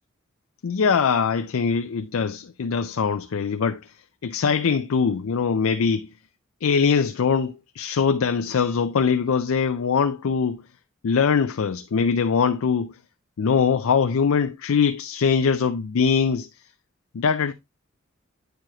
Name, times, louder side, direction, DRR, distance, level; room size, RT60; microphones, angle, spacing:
voice 1, 0.6-3.8 4.2-6.1 6.6-10.6 11.0-12.9 13.4-16.5 17.1-17.5, left 6 dB, 85° left, 0.4 m, -22 dB
9.0 x 4.8 x 2.8 m
head